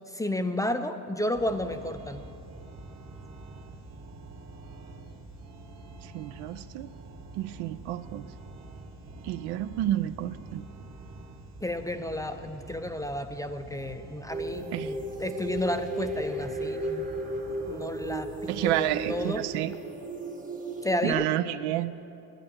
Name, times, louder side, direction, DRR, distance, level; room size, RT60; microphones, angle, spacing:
voice 1, 0.1-2.2 11.6-17.0 17.7-19.4 20.8-21.2, left 1 dB, 10° left, 8 dB, 0.4 m, -32 dB
sound 1, 1.3-19.4, right 2 dB, 45° right, 1.4 m, -46 dB
voice 2, 6.0-6.9 7.3-8.3 9.2-10.6 14.7-14.9 18.5-19.7 21.0-22.0, right 14 dB, 85° right, 13 dB, 0.5 m, -30 dB
sound 2, 14.3-21.1, right 1 dB, 20° right, 0.9 m, -35 dB
10.0 x 8.6 x 7.0 m, 2.7 s
cardioid pair, 105°, 39 cm